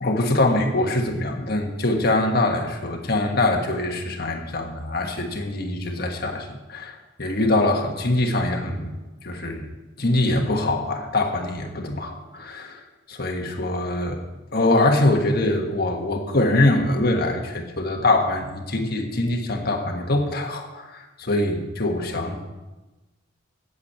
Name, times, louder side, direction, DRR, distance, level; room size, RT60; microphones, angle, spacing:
voice 1, 0.0-8.9 9.2-9.6 10.0-12.8 13.1-14.2 14.5-22.4, left 2 dB, 55° left, 2 dB, 1.5 m, -23 dB
8.4 x 8.3 x 8.6 m, 1.1 s
head